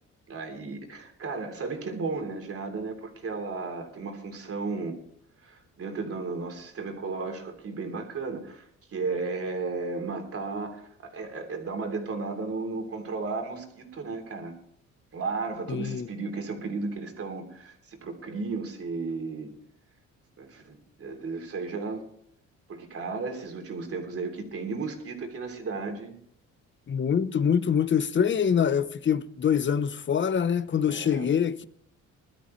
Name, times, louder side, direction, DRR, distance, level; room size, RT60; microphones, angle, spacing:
voice 1, 0.3-5.0 5.4-14.5 15.1-19.5 20.4-22.0 22.7-26.2 30.9-31.3, right 4 dB, 50° right, 3.3 m, -34 dB
voice 2, 15.7-16.1 26.9-31.6, left 7 dB, 40° left, 0.8 m, -25 dB
21.0 x 12.5 x 3.2 m
cardioid pair, 90°, 30 cm